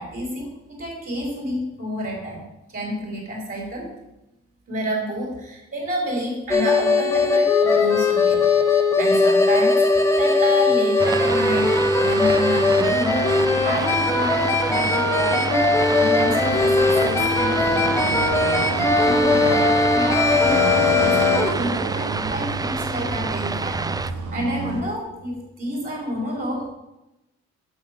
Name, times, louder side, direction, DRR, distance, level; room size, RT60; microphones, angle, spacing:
voice 1, 0.0-3.9 4.7-8.5 9.0-9.9 10.2-13.2 13.6-18.1 18.6-21.2 21.6-23.8 24.3-26.7, equal, 45° right, -3 dB, 3.5 m, -29 dB
sound 1, 6.5-21.5, left 3 dB, 10° left, 1.2 m, -19 dB
sound 2, 11.0-24.1, right 4 dB, 15° right, 0.3 m, -28 dB
Accelerating revving vroom, 16.1-24.9, right 5 dB, 85° right, 1.4 m, -33 dB
7.3 x 6.4 x 6.2 m, 0.94 s
cardioid pair, 90°, 30 cm